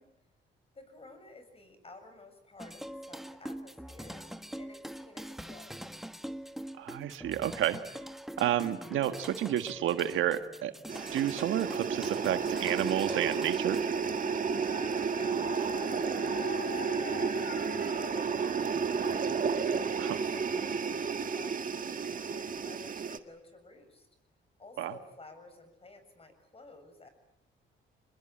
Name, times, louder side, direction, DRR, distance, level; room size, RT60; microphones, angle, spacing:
voice 1, 0.7-4.3 4.5-5.8 15.0-24.1 24.6-27.1, left 2 dB, 30° left, 9 dB, 7.3 m, -53 dB
sound 1, 2.6-13.9, equal, ahead, 1.4 m, -44 dB
voice 2, 6.8-7.8 8.4-10.7 11.1-13.8 20.0-20.2 24.8-24.9, right 11 dB, 80° right, 9 dB, 1.6 m, -30 dB
sound 2, 10.9-23.2, right 5 dB, 45° right, 1.8 m, -32 dB
Dog, 13.6-18.7, left 6 dB, 45° left, 1.9 m, -46 dB
26.5 x 21.5 x 9.0 m, 0.85 s
cardioid pair, 90°, 20 cm